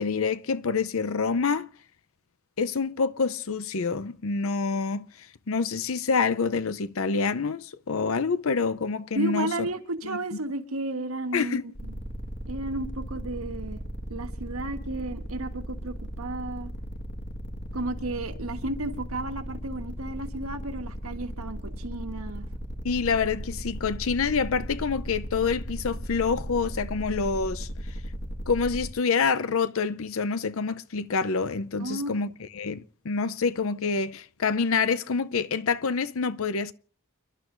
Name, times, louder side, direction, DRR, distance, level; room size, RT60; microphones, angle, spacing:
voice 1, 0.0-1.7 2.6-9.5 10.0-10.2 11.3-11.6 22.8-27.7 28.5-36.7, left 5 dB, 70° left, 0.6 m, -27 dB
voice 2, 9.1-11.9 12.5-13.8 14.1-16.7 17.7-22.5 31.8-32.2, right 2 dB, 85° right, 1.4 m, -33 dB
sound 1, 11.7-28.9, equal, 55° left, 1.8 m, -36 dB
30.0 x 11.5 x 2.6 m
head